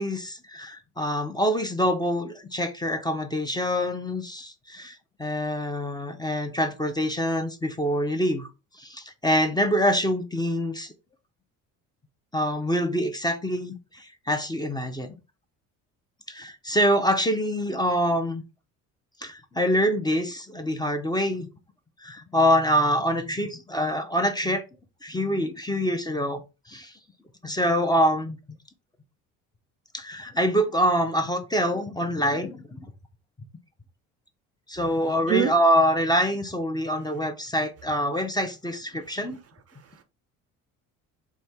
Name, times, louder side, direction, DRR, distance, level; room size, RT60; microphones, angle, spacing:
voice 1, 0.0-8.5 8.8-10.9 12.3-15.1 16.3-18.4 19.2-21.5 22.0-24.6 25.0-26.4 26.7-26.9 27.4-28.4 29.9-32.8 34.7-39.4, equal, 10° left, 0.6 m, -25 dB
voice 2, 34.8-35.5 36.9-37.2 37.8-38.3 38.9-40.0, right 10 dB, 35° right, 0.5 m, -32 dB
3.2 x 2.4 x 4.2 m
hypercardioid pair, 60°, 42 cm